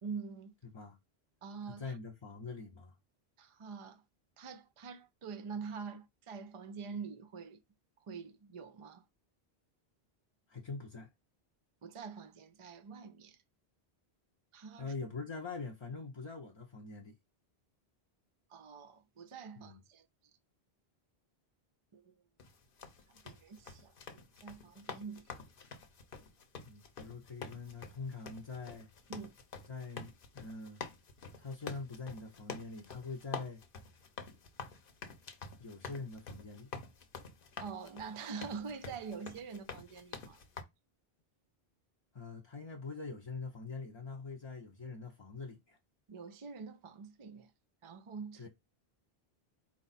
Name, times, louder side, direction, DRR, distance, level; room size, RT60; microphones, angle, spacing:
voice 1, 0.0-0.5 1.4-2.0 3.4-4.0 4.4-7.6 8.1-9.0 11.8-13.4 14.5-14.9 18.5-20.1 21.9-22.1 23.1-25.3 29.1-29.3 37.6-40.4 46.1-47.5 47.8-48.5, right 5 dB, 50° right, 0.4 m, -45 dB
voice 2, 1.8-2.9 10.5-11.1 14.8-17.2 19.6-19.8 26.7-28.9 29.7-30.8 31.4-33.6 35.6-36.7 42.1-45.8 48.4-48.5, left 4 dB, 35° left, 0.5 m, -44 dB
sound 1, 22.4-40.6, left 5 dB, 60° left, 0.9 m, -48 dB
4.5 x 2.4 x 4.0 m
omnidirectional pair, 1.0 m